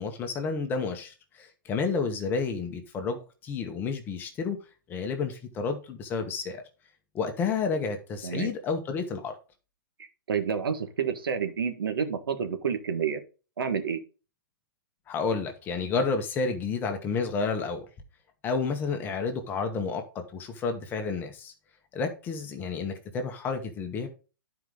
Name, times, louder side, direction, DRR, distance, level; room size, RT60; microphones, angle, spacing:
voice 1, 0.0-4.6 4.9-6.6 7.1-9.3 15.1-17.8 18.4-20.0 20.3-21.5 21.9-24.1, left 4 dB, 15° left, 1.2 m, -30 dB
voice 2, 10.3-13.2 13.6-14.0, right 7 dB, 85° right, 1.7 m, -29 dB
10.5 x 4.9 x 3.9 m
hypercardioid pair, 155°, 12 cm